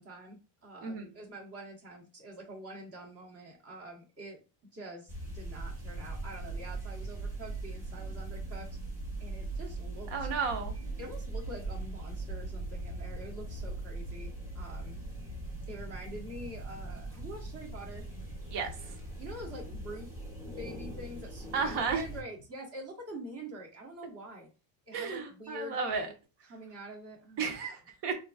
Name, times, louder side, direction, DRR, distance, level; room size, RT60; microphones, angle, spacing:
voice 1, 0.0-4.4 4.7-8.7 9.2-10.3 11.0-15.0 15.7-18.0 19.2-20.1 20.4-24.5 24.9-26.2 26.4-27.6, right 1 dB, 30° right, -1 dB, 1.1 m, -46 dB
sound 1, 5.1-22.2, right 2 dB, 5° right, 0.9 m, -40 dB
voice 2, 10.1-10.7 18.5-18.7 21.5-22.0 24.9-26.1 27.4-28.1, right 5 dB, 55° right, 4 dB, 1.0 m, -33 dB
3.8 x 2.6 x 2.3 m, 0.32 s
cardioid pair, 145°, 49 cm